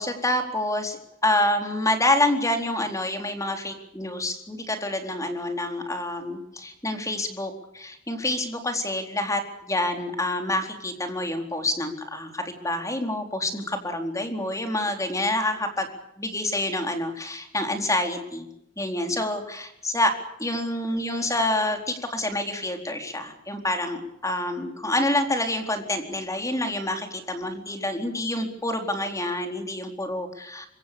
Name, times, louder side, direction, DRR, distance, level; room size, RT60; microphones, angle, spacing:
voice 1, 0.0-15.9 16.2-18.5 18.8-20.1 20.4-30.7, left 1 dB, 15° left, 5 dB, 4.1 m, -27 dB
26.0 x 24.5 x 6.9 m, 0.82 s
head